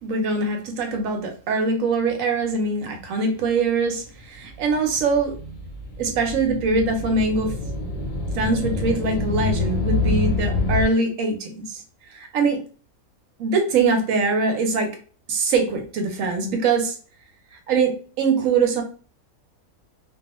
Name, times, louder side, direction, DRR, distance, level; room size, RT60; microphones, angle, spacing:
voice 1, 0.0-5.3 6.0-7.5 8.3-11.8 12.1-12.6 13.4-14.9 15.3-17.0 17.5-18.8, right 4 dB, 70° right, 3 dB, 1.0 m, -23 dB
sound 1, 4.3-10.9, left 3 dB, 50° left, 0.6 m, -26 dB
2.3 x 2.3 x 2.9 m, 0.39 s
omnidirectional pair, 1.5 m